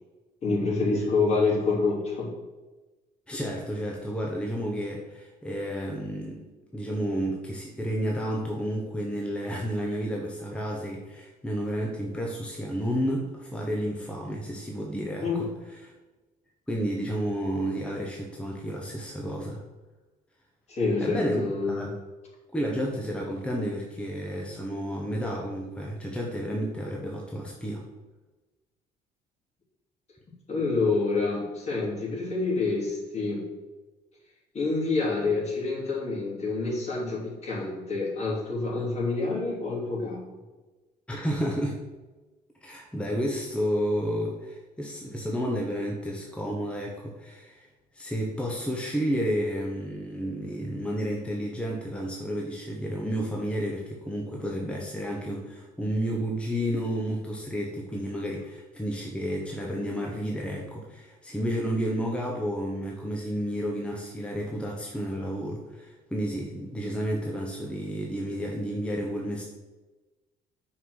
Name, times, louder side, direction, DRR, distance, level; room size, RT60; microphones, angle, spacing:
voice 1, 0.4-2.3 15.2-15.5 20.7-21.9 30.5-33.4 34.5-40.2, left 3 dB, 40° left, -3 dB, 2.7 m, -27 dB
voice 2, 3.3-6.4 6.7-15.9 16.7-19.6 21.0-21.4 21.7-22.0 22.5-27.8 41.1-41.8 42.6-47.7 47.9-69.4, equal, 5° left, -2 dB, 1.0 m, -31 dB
5.7 x 4.7 x 6.3 m, 1.2 s
cardioid pair, 110°, 17 cm